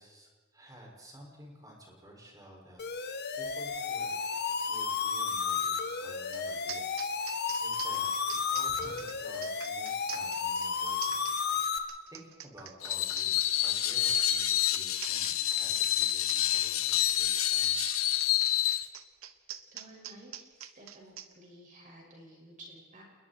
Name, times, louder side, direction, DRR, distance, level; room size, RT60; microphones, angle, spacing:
voice 1, 0.0-4.1 4.7-6.8 7.2-11.3 11.7-17.8, right 1 dB, 20° right, -2 dB, 6.3 m, -52 dB
sound 1, 2.8-11.8, left 6 dB, 50° left, 1.6 m, -32 dB
sound 2, 6.3-6.4 6.7-21.3, right 10 dB, 75° right, 1.1 m, -45 dB
Screech, 12.8-18.9, left 12 dB, 75° left, 1.2 m, -28 dB
voice 2, 19.7-23.0, right 1 dB, 40° right, -1 dB, 6.2 m, -53 dB
28.5 x 21.0 x 4.5 m, 1.5 s
head